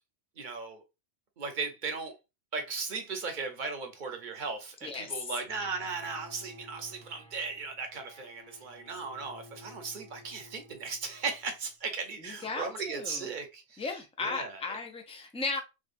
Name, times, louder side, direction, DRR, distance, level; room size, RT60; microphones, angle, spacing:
voice 1, 0.4-0.8 1.4-2.1 2.5-13.8 14.2-14.6, right 4 dB, 50° right, 0.8 m, -37 dB
voice 2, 4.8-5.3 12.2-13.3 13.8-15.6, left 4 dB, 10° left, 0.3 m, -36 dB
Bowed string instrument, 5.4-11.6, left 1 dB, 85° left, 1.5 m, -54 dB
4.7 x 2.3 x 2.5 m
omnidirectional pair, 1.2 m